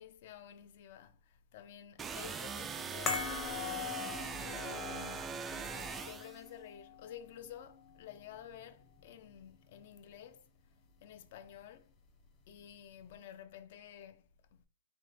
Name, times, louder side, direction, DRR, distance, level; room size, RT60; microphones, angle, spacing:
voice 1, 0.0-3.6 4.4-10.5 11.0-11.9 12.4-14.7, left 9 dB, 50° left, 0.6 m, -52 dB
sound 1, 2.0-6.4, right 6 dB, 15° right, 0.3 m, -41 dB
sound 2, 3.1-9.5 9.7-9.9, left 6 dB, 20° left, 0.7 m, -42 dB
3.5 x 3.1 x 4.1 m
hypercardioid pair, 155°, 0 cm